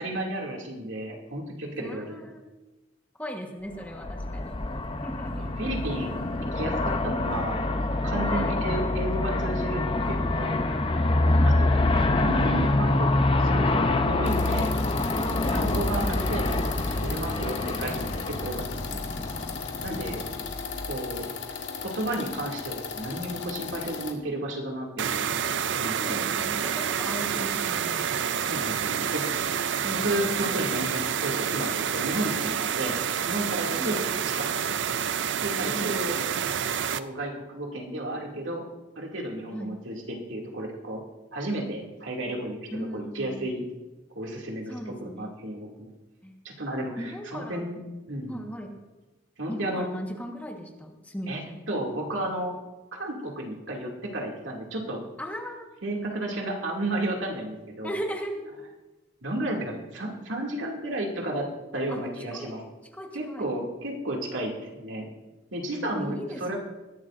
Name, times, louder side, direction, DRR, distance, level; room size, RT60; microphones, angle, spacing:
voice 1, 0.0-2.3 5.6-6.2 6.5-7.6 8.0-9.8 10.1-10.7 11.5-14.7 15.3-18.8 19.8-20.2 20.8-21.3 21.8-25.3 25.7-26.3 28.4-29.4 29.9-33.0 33.3-34.8 35.4-36.2 36.9-38.6 39.0-41.0 41.3-43.6 44.2-45.9 46.4-47.8 48.1-48.4 49.4-49.8 51.3-51.4 51.7-52.5 52.9-55.0 55.8-57.9 59.2-61.5 61.7-62.6 63.1-65.1 65.5-66.6, right 1 dB, 85° right, 0 dB, 2.5 m, -32 dB
voice 2, 1.8-2.4 3.2-4.5 5.0-5.6 8.3-8.6 11.3-11.6 15.1-16.2 19.9-20.8 25.9-28.1 29.8-30.4 33.8-34.0 35.7-36.0 39.5-39.8 42.7-43.5 44.7-45.3 46.2-46.4 47.0-47.6 48.3-48.8 49.5-51.6 55.2-55.7 57.8-58.4 61.9-62.5 62.9-63.5 65.9-66.6, equal, 10° left, 2 dB, 1.3 m, -37 dB
Aircraft, 3.8-21.1, left 2 dB, 30° left, 0.7 m, -26 dB
sound 1, 14.2-24.1, left 6 dB, 70° left, 1.6 m, -37 dB
sound 2, 25.0-37.0, right 8 dB, 70° right, 0.5 m, -28 dB
20.5 x 11.5 x 2.6 m, 1.1 s
head